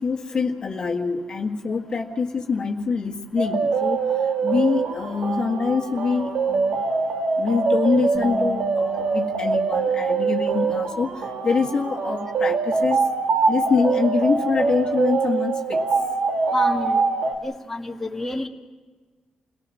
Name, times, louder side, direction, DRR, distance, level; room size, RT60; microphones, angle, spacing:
voice 1, 0.0-4.0 4.4-6.8 7.4-13.0 13.5-15.8, left 5 dB, 40° left, 1 dB, 1.8 m, -25 dB
sound 1, 3.4-17.3, right 4 dB, 75° right, 1.9 m, -23 dB
Bass guitar, 8.1-14.4, left 2 dB, 10° right, 3.3 m, -43 dB
voice 2, 16.5-17.0 17.4-18.5, left 2 dB, 10° left, 1 dB, 1.8 m, -29 dB
29.0 x 18.5 x 6.4 m, 1.4 s
cardioid pair, 120°, 2 cm